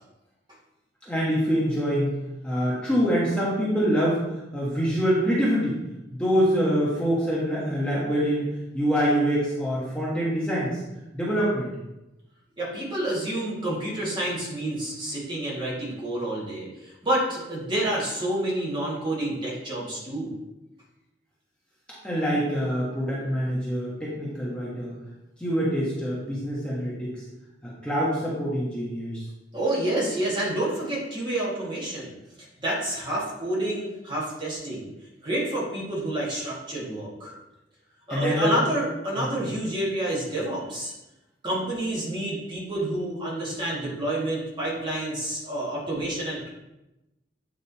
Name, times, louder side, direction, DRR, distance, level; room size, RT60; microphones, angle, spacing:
voice 1, 1.1-2.1 2.4-4.2 4.5-5.8 6.2-8.5 8.7-10.8 11.1-11.7 22.0-24.9 25.4-27.2 27.6-29.2 38.1-38.5 39.2-39.3, equal, 5° left, -7 dB, 1.5 m, -25 dB
voice 2, 12.6-20.3 29.5-32.1 32.4-34.9 35.2-37.3 38.1-40.9 41.4-46.5, right 1 dB, 25° right, -6 dB, 2.3 m, -29 dB
8.9 x 3.8 x 4.2 m, 0.95 s
head